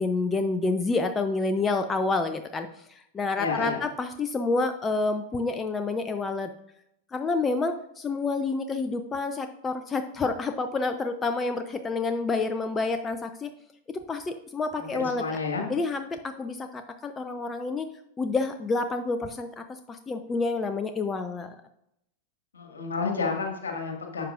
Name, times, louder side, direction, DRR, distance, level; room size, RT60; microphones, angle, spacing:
voice 1, 0.0-6.5 7.1-13.5 13.9-15.4 15.7-17.9 18.2-21.5, left 3 dB, 20° left, 8 dB, 0.5 m, -28 dB
voice 2, 3.4-3.8 14.8-15.7 22.5-24.2, left 4 dB, 70° left, 2 dB, 1.8 m, -30 dB
11.0 x 7.1 x 2.5 m, 0.78 s
figure-of-eight pair, 90°, 0 cm